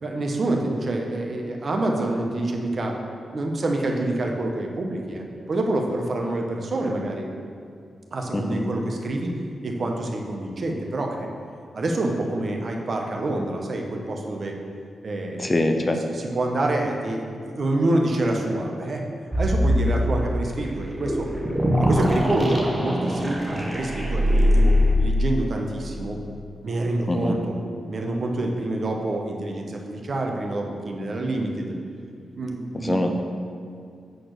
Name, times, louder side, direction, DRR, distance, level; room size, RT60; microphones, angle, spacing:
voice 1, 0.0-2.9 3.3-7.3 8.1-9.3 9.6-11.3 11.7-14.6 15.0-15.7 15.9-19.1 19.4-21.3 21.8-26.2 26.6-27.6 27.9-31.7 32.4-33.1, right 2 dB, 40° right, 1 dB, 0.9 m, -27 dB
voice 2, 8.3-8.7 15.4-16.0 27.1-27.3 32.8-33.1, left 1 dB, 20° left, 5 dB, 0.5 m, -23 dB
sound 1, 19.3-25.0, equal, 10° right, 0.8 m, -22 dB
7.9 x 4.2 x 6.6 m, 2.3 s
wide cardioid pair, 125°, 0 cm